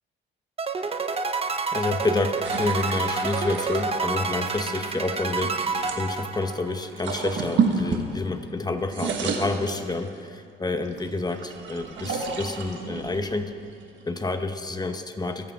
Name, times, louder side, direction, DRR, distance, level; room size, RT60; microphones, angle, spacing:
sound 1, 0.6-6.9, right 4 dB, 30° right, 0.8 m, -29 dB
voice 1, 1.7-13.5 14.1-15.5, left 2 dB, 20° left, 7 dB, 1.0 m, -29 dB
sound 2, 2.4-6.0 6.8-8.5 8.8-10.3 10.8-14.2, right 5 dB, 70° right, 1.5 m, -31 dB
23.0 x 8.6 x 3.7 m, 2.2 s
cardioid pair, 90°, 20 cm